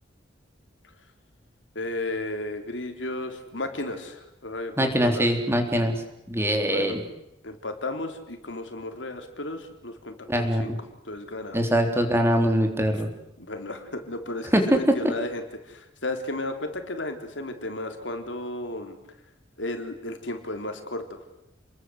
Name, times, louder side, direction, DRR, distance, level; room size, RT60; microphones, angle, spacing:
voice 1, 1.8-5.3 6.6-7.0 7.4-10.7 11.0-11.7 13.4-19.0 19.6-21.2, left 2 dB, 80° left, 6 dB, 3.7 m, -34 dB
voice 2, 4.8-5.9 6.3-7.0 10.3-10.8 11.5-13.1 14.5-14.8, equal, 15° right, 5 dB, 3.7 m, -23 dB
29.5 x 21.5 x 8.0 m, 0.85 s
head